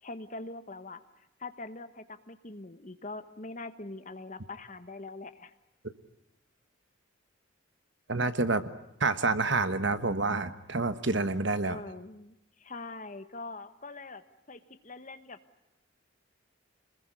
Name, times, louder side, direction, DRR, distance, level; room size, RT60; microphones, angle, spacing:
voice 1, 0.0-1.0 1.4-5.5 11.6-14.2 14.5-15.4, left 2 dB, 35° left, 11 dB, 1.3 m, -43 dB
voice 2, 8.1-8.7 9.0-11.8, right 3 dB, 55° right, 12 dB, 1.3 m, -28 dB
27.5 x 21.0 x 9.8 m, 0.89 s
head